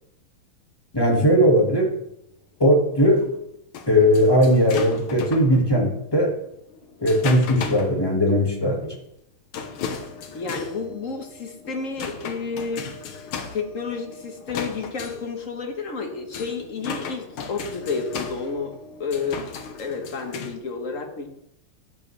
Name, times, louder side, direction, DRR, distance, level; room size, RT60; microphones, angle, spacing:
voice 1, 0.9-1.9 2.6-3.2 3.9-6.3 7.0-8.9, equal, 10° left, -1 dB, 1.7 m, -18 dB
sound 1, 2.7-5.6 6.4-8.0 8.3-8.4 8.7-8.8 9.5-20.6, left 6 dB, 75° left, 1.9 m, -36 dB
voice 2, 10.3-12.9 13.5-18.7 19.0-19.5 19.8-21.3, left 4 dB, 45° left, 3 dB, 1.3 m, -30 dB
13.0 x 8.8 x 3.3 m, 0.80 s
omnidirectional pair, 2.4 m